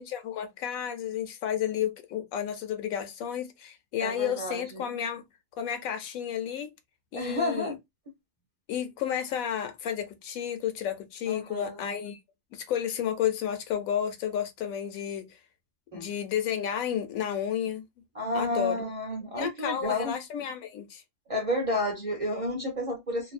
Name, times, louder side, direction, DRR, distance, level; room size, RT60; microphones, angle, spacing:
voice 1, 0.0-5.2 5.6-6.7 7.1-7.8 8.7-12.2 12.5-15.3 15.9-17.8 18.3-18.8 19.4-21.0, left 9 dB, 85° left, 1.0 m, -31 dB
voice 2, 4.0-4.8 7.1-7.8 11.3-11.8 15.9-16.1 18.1-20.2 21.3-23.3, left 1 dB, 35° right, 0.6 m, -31 dB
2.6 x 2.0 x 2.4 m
omnidirectional pair, 1.4 m